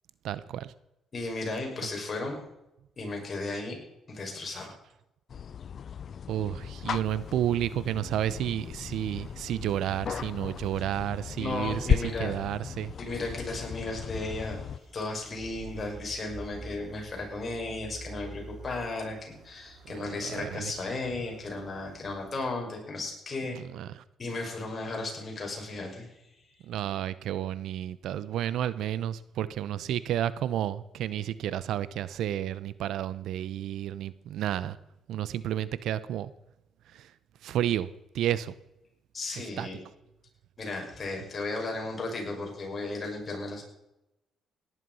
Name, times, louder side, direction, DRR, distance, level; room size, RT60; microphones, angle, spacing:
voice 1, 0.2-0.7 6.3-12.9 19.9-20.7 23.5-24.0 26.6-34.8 35.1-36.3 36.9-37.1 37.4-37.9 38.1-38.5 39.4-39.7, right 11 dB, 80° right, 0.8 m, -31 dB
voice 2, 1.1-2.4 3.0-3.8 4.1-4.7 11.4-12.3 13.0-14.6 14.9-23.6 24.2-26.1 39.1-39.8 40.6-43.6, left 2 dB, 35° left, 5.9 m, -35 dB
sound 1, 5.3-14.8, left 7 dB, 55° left, 0.4 m, -35 dB
sound 2, 6.9-22.5, right 3 dB, 55° right, 3.3 m, -50 dB
17.5 x 11.0 x 5.6 m
cardioid pair, 90°, 0 cm